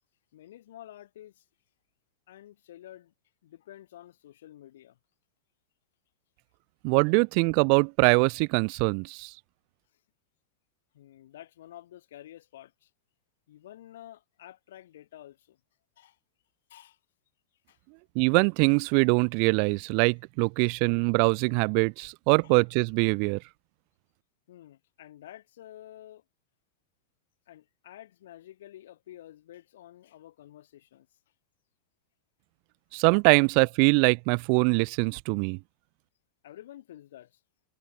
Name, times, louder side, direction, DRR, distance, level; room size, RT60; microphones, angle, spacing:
voice 1, 0.3-1.4 2.3-3.1 3.4-5.0 10.9-12.9 13.5-15.6 16.0-16.2 16.7-17.0 17.7-17.8 20.6-20.7 22.4-22.5 24.5-26.2 27.5-31.1 36.4-37.4, left 13 dB, 80° left, 2.8 m, -50 dB
voice 2, 6.8-9.3 18.2-23.4 32.9-35.6, right 40 dB or more, 45° right, 0.5 m, -23 dB
supercardioid pair, 155°, 0 cm